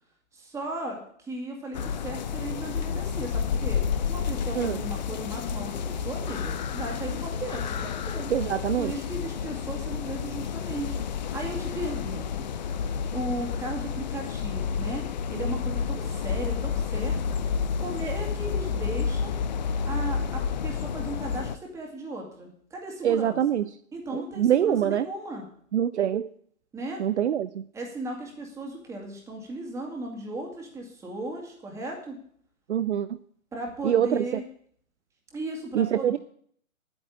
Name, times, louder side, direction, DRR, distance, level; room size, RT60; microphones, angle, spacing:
voice 1, 0.3-8.3 8.8-12.5 13.1-17.4 17.8-19.4 19.8-23.4 23.9-25.4 26.7-27.0 27.7-32.2 33.5-34.4 35.3-36.2, right 2 dB, 5° right, 1 dB, 2.2 m, -36 dB
sound 1, 1.7-21.6, left 6 dB, 35° left, 0.6 m, -30 dB
voice 2, 8.3-8.9 23.0-23.6 24.1-25.1 25.7-26.3 27.0-27.6 32.7-33.1 33.8-34.2 35.7-36.2, right 10 dB, 55° right, 13 dB, 0.6 m, -24 dB
9.5 x 9.1 x 8.5 m, 0.63 s
hypercardioid pair, 155°, 40 cm